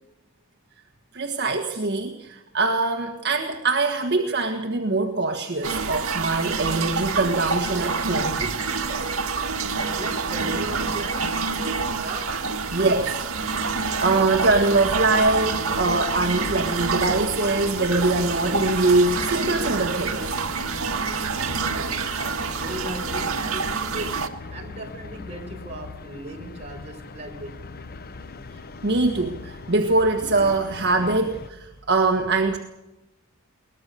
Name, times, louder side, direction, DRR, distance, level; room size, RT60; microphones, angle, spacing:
voice 1, 1.1-8.6 12.7-13.3 14.0-20.2 28.8-32.6, right 3 dB, 50° right, 3 dB, 1.6 m, -23 dB
sound 1, 5.6-24.3, right 4 dB, 75° right, 1.8 m, -27 dB
voice 2, 10.0-11.3 12.0-12.3 21.4-22.1 22.5-24.2 24.5-27.6, right 1 dB, 30° right, 1 dB, 5.6 m, -37 dB
sound 2, 14.0-31.5, left 3 dB, 45° left, 0.9 m, -40 dB
22.0 x 20.0 x 6.8 m, 0.98 s
head